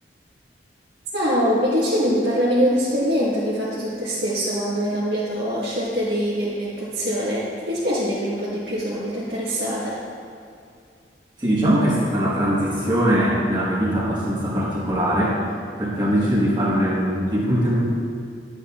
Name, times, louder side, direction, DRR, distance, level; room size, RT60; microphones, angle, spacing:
voice 1, 1.1-10.0, equal, 65° right, -10 dB, 1.9 m, -23 dB
voice 2, 11.4-15.4 15.8-17.8, equal, 25° right, -8 dB, 1.4 m, -21 dB
11.0 x 8.5 x 2.4 m, 2.4 s
head